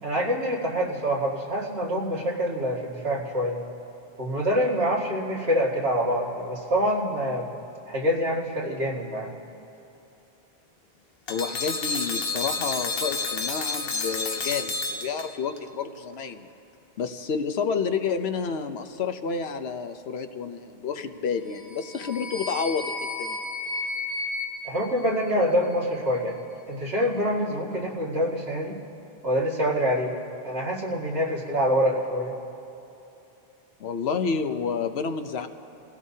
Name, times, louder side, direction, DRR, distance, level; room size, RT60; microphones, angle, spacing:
voice 1, 0.0-3.6 4.2-7.5 7.9-9.3 24.6-26.4 26.7-28.7 29.2-30.2 30.4-32.3, equal, 80° right, -3 dB, 2.3 m, -26 dB
voice 2, 11.3-16.5 17.0-23.4 33.8-35.5, left 5 dB, 90° left, 8 dB, 1.1 m, -30 dB
sound 1, 11.3-15.6, left 3 dB, 70° left, 1.1 m, -30 dB
sound 2, 21.5-25.8, left 3 dB, 45° left, 2.1 m, -34 dB
28.0 x 16.5 x 2.8 m, 2.9 s
omnidirectional pair, 1.0 m